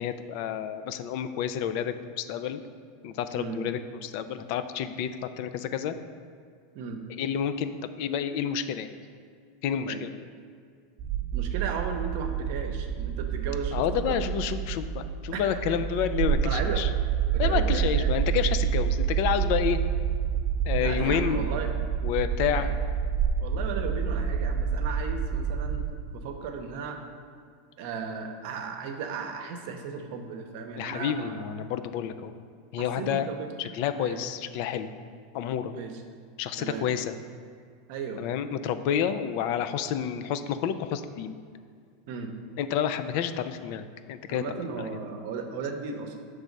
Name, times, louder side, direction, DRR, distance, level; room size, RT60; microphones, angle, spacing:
voice 1, 0.0-2.6 3.0-6.0 7.2-8.9 9.6-10.1 13.7-16.9 17.4-19.8 20.6-21.4 22.0-22.7 30.8-32.3 32.7-33.3 33.6-34.9 35.3-35.7 36.4-37.1 38.2-41.4 42.6-44.4 44.8-44.9, left 9 dB, 60° left, 10 dB, 0.3 m, -29 dB
sound 1, 11.0-25.9, right 7 dB, 40° right, 0.3 m, -28 dB
voice 2, 11.3-14.2 15.3-15.6 16.4-16.8 17.3-18.2 20.8-21.7 22.5-22.7 23.4-27.0 27.8-31.4 32.8-33.5 34.0-34.2 35.7-36.0 36.6-36.9 37.9-38.2 42.1-42.3 44.3-46.2, right 5 dB, 65° right, 5 dB, 0.7 m, -36 dB
6.1 x 3.3 x 5.2 m, 2.2 s
supercardioid pair, 120°, 0 cm